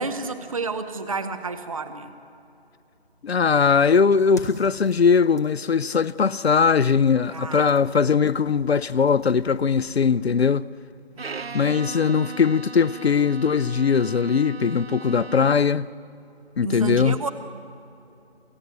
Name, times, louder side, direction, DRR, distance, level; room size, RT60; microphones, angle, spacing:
voice 1, 0.0-2.1 7.3-7.7 11.2-11.8 16.6-17.3, right 3 dB, 35° right, 0.8 m, -31 dB
voice 2, 3.2-10.7 11.5-15.9 16.6-17.2, left 6 dB, 70° left, 0.6 m, -20 dB
sound 1, 4.1-9.9, left 1 dB, 15° left, 0.9 m, -45 dB
Bowed string instrument, 11.2-15.8, right 4 dB, 70° right, 0.9 m, -38 dB
29.0 x 15.5 x 8.1 m
figure-of-eight pair, 165°, 32 cm